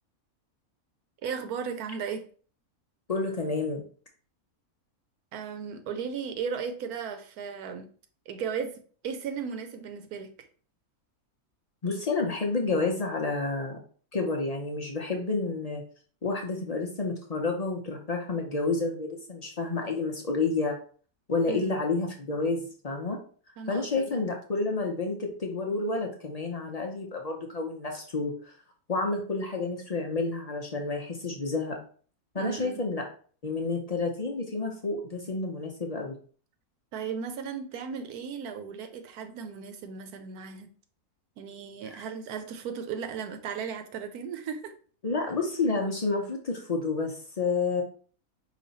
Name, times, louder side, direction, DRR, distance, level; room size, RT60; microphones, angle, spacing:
voice 1, 1.2-2.2 5.3-7.9 8.3-8.7 9.0-10.5 21.5-21.8 23.6-24.2 32.4-32.8 36.9-40.7 41.4-44.7, right 6 dB, 85° right, 8 dB, 1.2 m, -36 dB
voice 2, 3.1-3.8 11.8-13.8 14.1-15.8 16.2-20.8 21.3-23.2 23.7-28.5 28.9-31.8 32.3-33.0 33.4-36.2 41.9-42.0 45.0-47.8, left 3 dB, 50° left, 2 dB, 0.4 m, -30 dB
5.0 x 2.7 x 4.0 m, 0.43 s
omnidirectional pair, 1.6 m